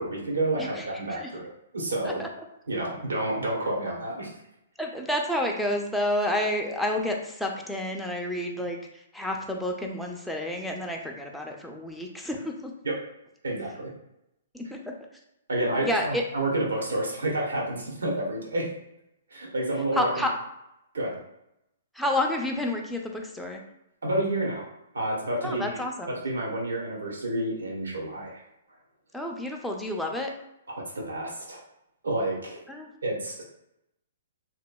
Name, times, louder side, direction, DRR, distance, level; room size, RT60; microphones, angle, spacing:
voice 1, 0.0-2.2 2.7-4.3 12.8-13.0 13.4-13.9 15.5-18.7 19.3-20.3 20.9-21.2 24.0-24.7 24.9-25.8 26.1-28.4 30.9-31.6 32.0-32.6 33.0-33.4, right 1 dB, 85° right, -2 dB, 1.0 m, -29 dB
voice 2, 0.6-1.3 2.0-2.3 4.8-12.7 14.5-14.8 15.8-16.2 19.9-20.3 21.9-23.6 25.4-26.1 29.1-30.3 32.7-32.9, left 1 dB, ahead, 0 dB, 0.4 m, -30 dB
3.0 x 2.5 x 2.2 m, 0.84 s
hypercardioid pair, 135°, 0 cm